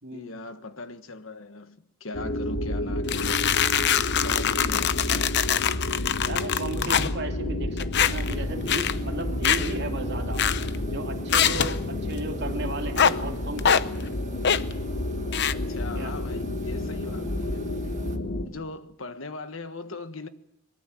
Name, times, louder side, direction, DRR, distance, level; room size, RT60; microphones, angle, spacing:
voice 1, 0.1-3.4 4.1-5.4 15.5-17.9 18.4-20.3, left 2 dB, 75° left, 1.4 m, -39 dB
sound 1, 2.1-18.5, left 1 dB, 90° left, 2.4 m, -30 dB
sound 2, 3.1-7.1 7.8-8.3 8.7-8.9 9.4-9.7 10.4-10.8 11.3-11.8 13.0-13.1 13.6-13.8 14.4-14.7 15.3-15.5, left 8 dB, 55° left, 0.8 m, -23 dB
voice 2, 6.2-10.5 10.9-13.8 15.9-16.1, right 2 dB, 55° right, 2.7 m, -35 dB
sound 3, 8.0-18.2, right 2 dB, 35° right, 1.9 m, -46 dB
23.0 x 21.5 x 7.8 m
head